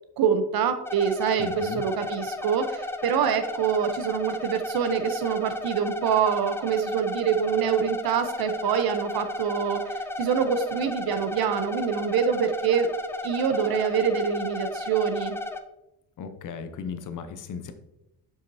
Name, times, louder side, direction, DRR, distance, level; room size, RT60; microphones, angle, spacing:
voice 1, 0.2-12.9 13.2-15.4, right 7 dB, 60° right, 9 dB, 0.7 m, -25 dB
sound 1, 0.9-15.6, left 2 dB, 5° left, 0.3 m, -34 dB
voice 2, 1.4-1.8 16.2-17.7, left 6 dB, 50° left, 8 dB, 0.8 m, -36 dB
7.4 x 5.6 x 2.7 m, 0.91 s
cardioid pair, 115°, 41 cm